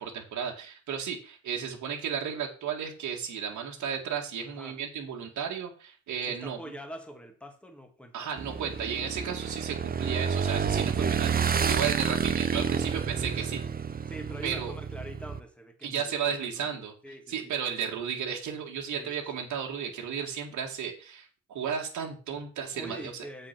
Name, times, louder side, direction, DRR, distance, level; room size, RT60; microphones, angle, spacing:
voice 1, 0.0-6.6 8.1-13.6 14.4-14.7 15.8-16.9 17.3-23.0, right 7 dB, 75° right, 2.0 m, -34 dB
voice 2, 4.4-4.8 6.2-8.4 14.1-16.7 17.0-17.5 18.9-19.1 22.7-23.5, right 1 dB, 5° left, 2.0 m, -44 dB
Motorcycle / Engine, 8.4-15.4, right 6 dB, 30° right, 0.8 m, -29 dB
7.6 x 5.7 x 6.0 m
cardioid pair, 90°, 30 cm